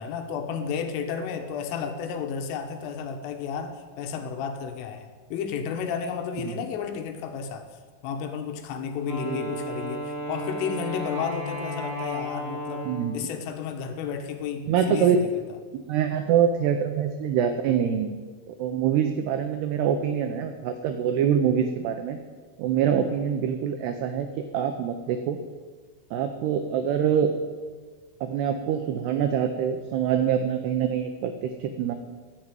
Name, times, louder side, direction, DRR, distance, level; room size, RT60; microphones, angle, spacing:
voice 1, 0.0-7.7 8.0-12.9 13.1-15.4, left 6 dB, 80° left, 5 dB, 3.8 m, -32 dB
Wind instrument woodwind instrument, 9.0-13.3, equal, 20° right, 1.8 m, -34 dB
voice 2, 14.7-15.3 15.7-18.2 18.5-22.2 22.6-25.4 26.1-27.3 28.2-31.9, right 8 dB, 90° right, 7 dB, 2.3 m, -25 dB
14.0 x 7.6 x 9.1 m, 1.5 s
omnidirectional pair, 5.8 m